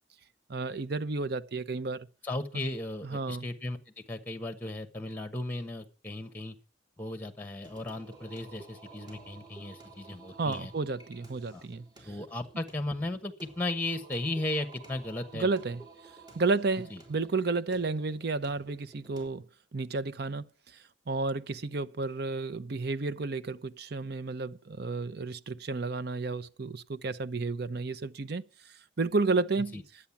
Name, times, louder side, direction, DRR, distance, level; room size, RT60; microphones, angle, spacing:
voice 1, 0.5-2.1 3.0-3.5 10.4-12.2 15.3-15.8 16.3-19.5 19.7-20.4 21.1-28.4 29.0-29.8, right 3 dB, 60° right, 0.7 m, -31 dB
voice 2, 2.2-3.8 4.1-6.6 7.0-10.7 11.5-11.6 12.0-15.5 16.9-17.0 29.7-29.8, left 2 dB, 10° left, 1.2 m, -36 dB
Singing, 7.6-19.3, right 3 dB, 25° right, 3.8 m, -53 dB
11.5 x 8.5 x 7.1 m
head